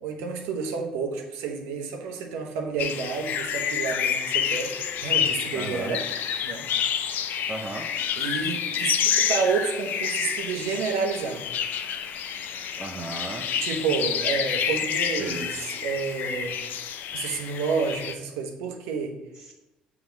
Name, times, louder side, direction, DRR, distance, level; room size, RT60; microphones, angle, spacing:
voice 1, 0.0-6.0 6.4-6.6 8.2-11.5 13.6-16.6 17.1-19.2, right 5 dB, 75° right, 3 dB, 0.9 m, -30 dB
sound 1, 2.8-18.1, left 8 dB, 60° left, 0.4 m, -28 dB
voice 2, 5.5-6.0 7.5-7.9 12.8-13.5 15.2-15.5 19.4-19.5, right 2 dB, 25° right, -1 dB, 0.9 m, -35 dB
7.2 x 3.0 x 5.1 m, 1.0 s
hypercardioid pair, 60°, 3 cm